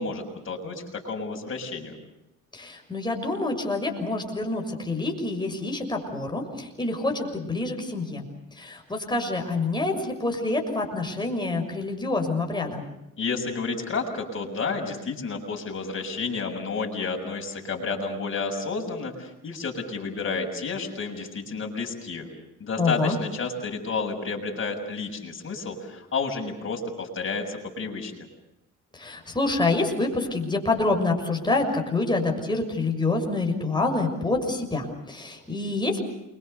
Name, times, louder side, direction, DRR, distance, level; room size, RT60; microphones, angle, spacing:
voice 1, 0.0-2.0 13.2-22.3 22.6-28.3, left 4 dB, 40° left, 1 dB, 7.1 m, -31 dB
voice 2, 2.5-8.2 8.5-12.8 22.8-23.2 28.9-36.0, left 3 dB, 15° left, 2 dB, 6.6 m, -27 dB
28.5 x 24.0 x 6.9 m, 0.89 s
cardioid pair, 90°, 30 cm